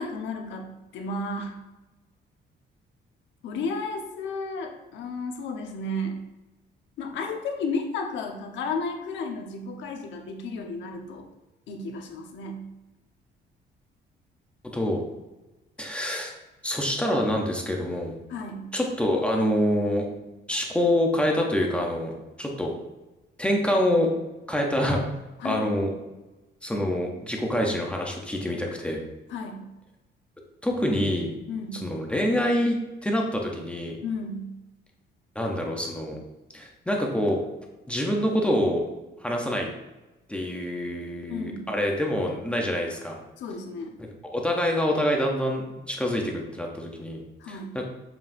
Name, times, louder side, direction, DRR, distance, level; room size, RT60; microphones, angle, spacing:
voice 1, 0.0-1.6 3.4-6.2 7.0-11.3 11.7-12.6 18.3-18.7 25.4-25.7 29.3-29.6 31.5-31.8 34.0-34.5 41.3-41.7 43.4-44.0 47.4-47.7, left 3 dB, 90° left, 2 dB, 1.1 m, -33 dB
voice 2, 14.7-15.0 15.8-16.3 16.6-18.2 18.7-20.1 20.5-22.1 22.4-22.7 23.4-24.2 24.5-25.0 25.4-25.9 26.6-29.0 30.6-31.3 31.7-32.8 33.0-34.0 35.3-36.2 36.5-37.4 37.9-38.8 39.2-39.7 40.3-43.2 44.3-47.2 47.5-47.8, left 1 dB, 5° left, 0 dB, 0.7 m, -26 dB
7.1 x 5.6 x 2.6 m, 1.1 s
cardioid pair, 180°, 18 cm